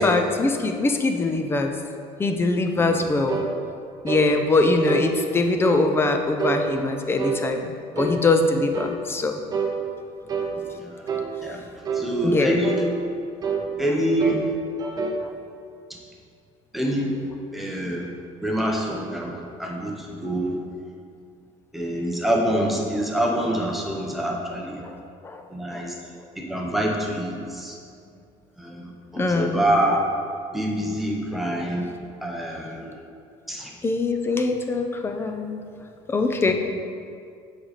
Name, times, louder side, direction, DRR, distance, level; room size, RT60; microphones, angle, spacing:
voice 1, 0.0-1.7 2.2-3.4 4.0-9.4 12.2-12.5 24.8-24.9 25.2-25.4 25.7-25.8 29.2-29.6 33.8-35.6 36.1-36.5, left 3 dB, 15° left, 5 dB, 0.5 m, -22 dB
voice 2, 2.8-3.1 10.5-11.1 11.4-11.6 11.9-12.8 13.8-14.6 16.7-17.2 17.5-18.1 18.4-20.6 21.7-24.8 25.5-25.9 26.4-27.8 28.6-30.1 30.5-31.9 32.2-32.9 33.5-33.7 36.4-36.5, right 1 dB, ahead, -2 dB, 1.0 m, -26 dB
sound 1, 3.3-3.5 4.1-4.3 4.8-5.1 5.6-5.9 6.4-6.6 7.2-7.4 7.9-8.2 8.7-9.0 9.5-9.7 10.3-10.6 11.1-11.3 11.8-12.1 12.6-12.9 13.4-13.7 14.2-14.5 14.8-15.2, right 5 dB, 30° right, 0.7 m, -27 dB
7.6 x 5.1 x 4.2 m, 2.3 s
cardioid pair, 145°, 14 cm